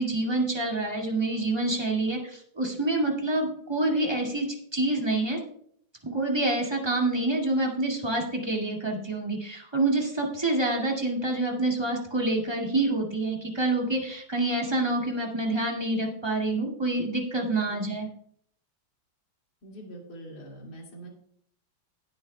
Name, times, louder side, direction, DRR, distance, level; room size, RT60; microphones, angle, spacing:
voice 1, 0.0-4.5 4.7-5.4 6.0-18.1, right 2 dB, 15° right, -1 dB, 2.0 m, -27 dB
voice 2, 19.6-21.1, right 1 dB, 55° left, -1 dB, 2.9 m, -44 dB
18.0 x 8.7 x 2.3 m, 0.62 s
omnidirectional pair, 2.1 m